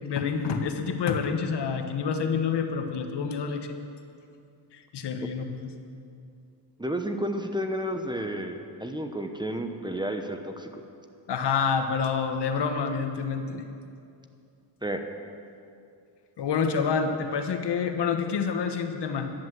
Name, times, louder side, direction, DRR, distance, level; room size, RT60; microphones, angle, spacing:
voice 1, 0.0-3.7 4.7-5.7 11.3-13.6 16.4-19.3, left 6 dB, 60° left, 6 dB, 1.3 m, -28 dB
voice 2, 6.8-10.7 14.8-15.0, equal, 10° right, 5 dB, 1.0 m, -31 dB
12.0 x 10.5 x 7.7 m, 2.5 s
cardioid pair, 95°, 46 cm